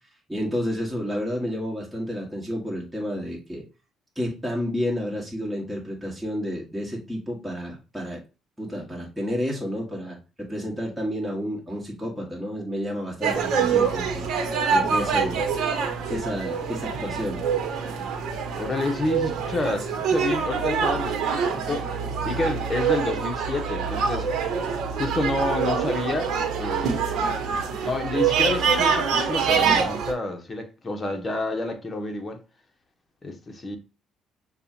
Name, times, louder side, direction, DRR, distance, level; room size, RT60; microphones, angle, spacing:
voice 1, 0.3-3.6 4.1-8.2 8.6-14.3 14.7-15.5 16.1-17.4, equal, 5° right, 1.7 m, -30 dB
sound 1, 13.2-30.1, right 6 dB, 70° right, 1.0 m, -25 dB
voice 2, 18.6-21.9 22.2-24.3 25.0-27.3 27.8-32.4 33.2-33.8, left 2 dB, 30° left, 1.1 m, -29 dB
6.6 x 2.4 x 2.8 m
supercardioid pair, 70°, 0 cm